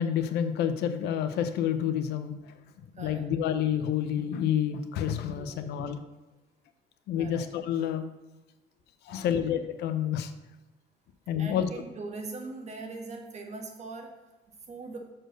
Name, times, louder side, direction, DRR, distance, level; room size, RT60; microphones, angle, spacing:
voice 1, 0.0-2.5 3.0-6.0 7.1-8.1 9.1-10.3 11.3-11.7, left 9 dB, 80° left, 9 dB, 0.8 m, -29 dB
voice 2, 5.3-5.8 7.2-7.5 9.1-9.4 11.4-14.1 14.7-15.0, right 3 dB, 40° right, 3 dB, 1.5 m, -41 dB
6.6 x 4.5 x 6.3 m, 1.1 s
cardioid pair, 110°, 17 cm